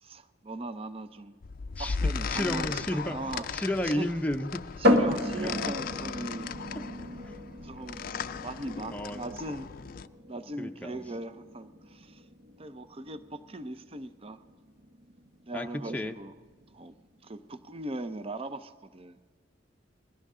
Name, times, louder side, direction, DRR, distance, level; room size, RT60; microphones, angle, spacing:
voice 1, 0.0-1.4 1.8-3.5 3.8-4.2 4.8-6.5 7.6-8.0 8.4-9.7 10.2-12.2 12.6-14.4 15.5-16.3 16.7-16.9 17.2-19.2, right 2 dB, 30° right, 12 dB, 0.6 m, -39 dB
sound 1, 1.4-10.1, left 5 dB, 50° left, 0.4 m, -37 dB
voice 2, 2.3-4.6 5.4-5.6 7.2-7.4 8.9-9.3 10.6-11.0 15.5-16.2, left 1 dB, 10° left, 4 dB, 0.6 m, -32 dB
sound 2, 4.8-18.3, left 1 dB, 60° right, 1.6 m, -34 dB
21.0 x 16.5 x 3.7 m, 1.5 s
head